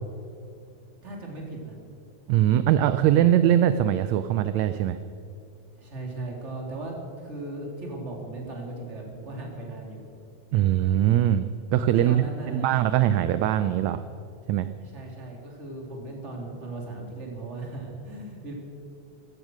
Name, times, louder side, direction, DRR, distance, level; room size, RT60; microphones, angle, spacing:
voice 1, 1.0-1.8 2.7-3.2 5.8-10.0 11.8-12.8 14.8-18.5, right 2 dB, 20° right, 0 dB, 2.9 m, -37 dB
voice 2, 2.3-5.0 10.5-14.0 14.5-14.7, right 11 dB, 80° right, 12 dB, 1.7 m, -22 dB
15.5 x 14.0 x 6.2 m, 2.6 s
omnidirectional pair, 3.5 m